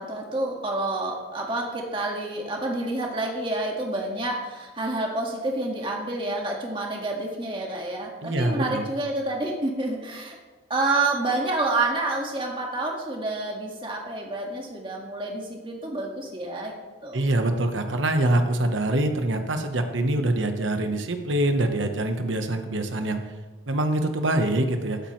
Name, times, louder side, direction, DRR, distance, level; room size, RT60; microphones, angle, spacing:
voice 1, 0.0-10.4 10.7-16.8 17.0-17.3, right 2 dB, 25° right, 0 dB, 1.8 m, -28 dB
voice 2, 8.2-8.9 17.1-23.2 23.7-25.0, right 1 dB, 85° right, 6 dB, 1.1 m, -24 dB
15.0 x 8.6 x 3.2 m, 1.3 s
head